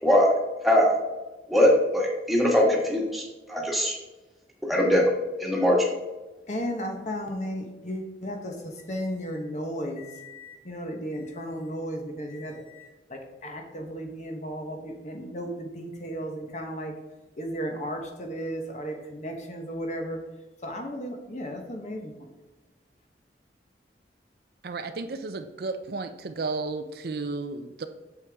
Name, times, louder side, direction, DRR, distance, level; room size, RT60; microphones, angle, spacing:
voice 1, 0.6-0.9 1.5-3.2 3.5-3.9 4.6-5.0 5.4-5.9, left 1 dB, ahead, -2 dB, 1.6 m, -21 dB
voice 2, 6.5-16.9 17.4-20.2 20.6-22.3, equal, 40° left, 3 dB, 1.1 m, -34 dB
voice 3, 24.6-27.9, right 3 dB, 55° right, 8 dB, 0.5 m, -33 dB
8.4 x 6.7 x 3.5 m, 1.1 s
head